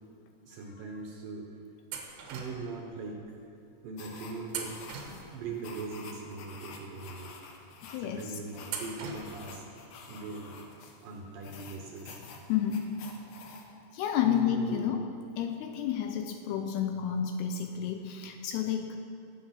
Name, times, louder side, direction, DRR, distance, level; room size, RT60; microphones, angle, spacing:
voice 1, 0.4-1.6 2.3-3.4 3.8-4.8 5.3-7.4 8.0-9.7 10.1-10.6 11.0-12.2 14.2-15.0, right 4 dB, 70° right, 0 dB, 2.3 m, -40 dB
sound 1, 1.9-2.8 4.5-5.6 8.7-9.6, right 6 dB, 85° right, 3.7 m, -40 dB
sound 2, 4.0-13.7, left 4 dB, 70° left, 2.6 m, -49 dB
voice 2, 7.9-8.4 12.5-13.0 13.9-15.0 15.4-19.0, left 9 dB, 85° left, 6 dB, 2.4 m, -30 dB
20.5 x 7.9 x 5.8 m, 2.6 s
omnidirectional pair, 5.1 m